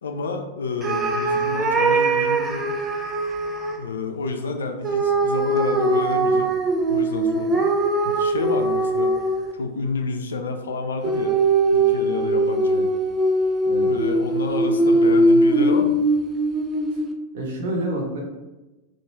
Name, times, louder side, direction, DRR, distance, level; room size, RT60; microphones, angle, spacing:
voice 1, 0.0-2.7 3.8-6.5 6.9-7.6 8.0-9.1 9.5-11.3 11.7-12.8 13.8-16.0, left 4 dB, 70° left, 5 dB, 0.3 m, -29 dB
sound 1, 0.8-3.8 4.8-9.6 11.0-17.1, right 2 dB, 20° right, 0.3 m, -21 dB
voice 2, 17.3-18.2, right 1 dB, 55° right, -1 dB, 0.7 m, -29 dB
2.3 x 2.1 x 3.0 m, 1.1 s
figure-of-eight pair, 90°, 0 cm